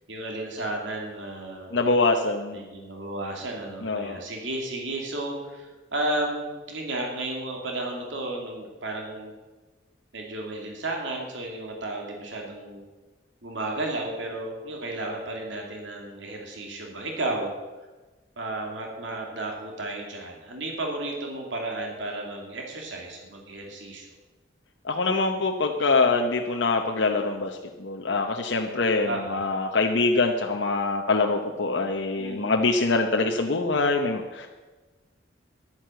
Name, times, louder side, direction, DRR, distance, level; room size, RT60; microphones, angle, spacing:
voice 1, 0.1-1.7 2.5-9.3 10.1-12.8 13.4-17.5 18.4-24.1 29.0-29.5 32.2-32.6, right 2 dB, 80° right, 0 dB, 2.5 m, -33 dB
voice 2, 1.7-2.6 3.8-4.2 24.8-34.5, left 3 dB, 70° left, 2 dB, 0.8 m, -24 dB
11.0 x 9.4 x 7.6 m, 1.2 s
head